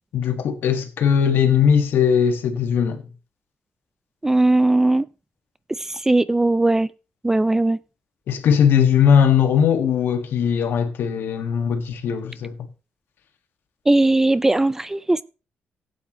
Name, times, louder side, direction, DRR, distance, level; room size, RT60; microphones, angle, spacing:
voice 1, 0.1-3.0 8.3-12.6, left 7 dB, 70° left, 1.7 m, -19 dB
voice 2, 4.2-5.1 5.8-6.9 7.2-7.8 13.9-15.2, right 2 dB, 10° right, 0.4 m, -18 dB
16.0 x 8.5 x 3.0 m
cardioid pair, 125°, 4 cm